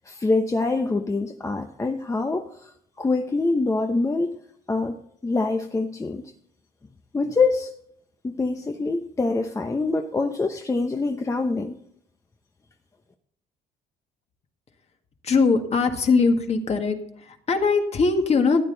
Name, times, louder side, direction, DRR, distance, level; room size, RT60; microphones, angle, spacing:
voice 1, 0.0-2.7 3.0-4.3 4.7-5.0 5.2-6.3 7.1-7.7 8.2-11.8, left 3 dB, 20° left, 0.8 m, -25 dB
voice 2, 15.2-17.0 17.3-18.6, left 4 dB, 40° left, 1.8 m, -21 dB
13.5 x 9.9 x 4.0 m
cardioid pair, 110°, 17 cm